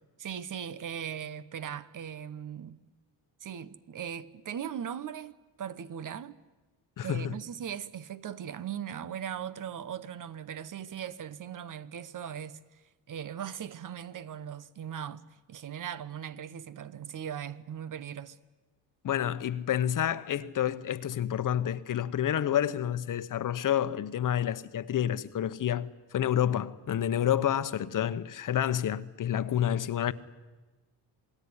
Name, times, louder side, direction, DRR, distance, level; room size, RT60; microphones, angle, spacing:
voice 1, 0.2-2.8 3.4-6.4 7.0-12.8 13.1-18.4, right 9 dB, 50° right, 1.2 m, -39 dB
voice 2, 7.0-7.3 19.0-30.1, left 10 dB, 50° left, 1.1 m, -29 dB
27.5 x 20.0 x 9.8 m
cardioid pair, 120°, 40 cm